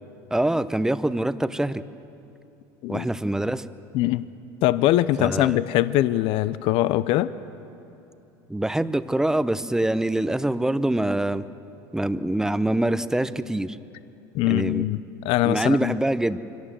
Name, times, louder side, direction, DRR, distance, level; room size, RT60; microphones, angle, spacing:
voice 1, 0.3-1.8 2.9-3.6 5.2-5.6 8.5-11.4 11.9-13.8 14.4-14.9 15.4-16.4, right 1 dB, 5° right, 13 dB, 0.7 m, -24 dB
voice 2, 4.6-7.3 14.3-16.0, left 14 dB, 60° left, 15 dB, 0.6 m, -22 dB
25.0 x 18.0 x 7.5 m, 2.8 s
supercardioid pair, 105°, 10 cm